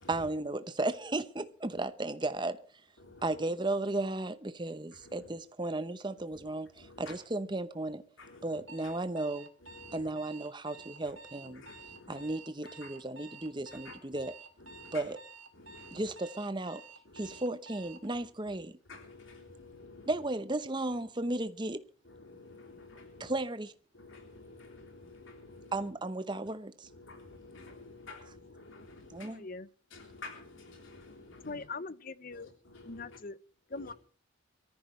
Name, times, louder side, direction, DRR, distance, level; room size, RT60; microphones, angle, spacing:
voice 1, 0.1-2.6 3.2-8.0 8.4-9.5 9.9-11.6 12.1-14.4 14.9-15.2 15.9-16.8 17.1-18.8 20.1-21.8 23.2-23.7 25.7-26.9 29.1-29.5, right 2 dB, 20° right, 0.8 m, -35 dB
voice 2, 3.0-3.4 4.9-5.3 6.3-6.5 6.8-7.2 8.2-8.9 9.6-10.1 11.1-11.2 11.4-12.3 12.6-12.9 13.8-14.2 14.6-15.1 15.5-16.1 17.0-17.4 18.1-18.6 18.9-20.1 22.0-23.4 23.9-25.9 26.8-29.3 29.9-31.7 32.3-33.2 33.7-33.9, left 3 dB, 65° left, 3.4 m, -51 dB
Alarm, 8.7-18.1, right 4 dB, 65° right, 2.4 m, -51 dB
voice 3, 29.2-29.7 31.4-32.5 32.8-33.4 33.7-33.9, left 3 dB, 40° left, 0.8 m, -41 dB
23.5 x 14.5 x 3.2 m
head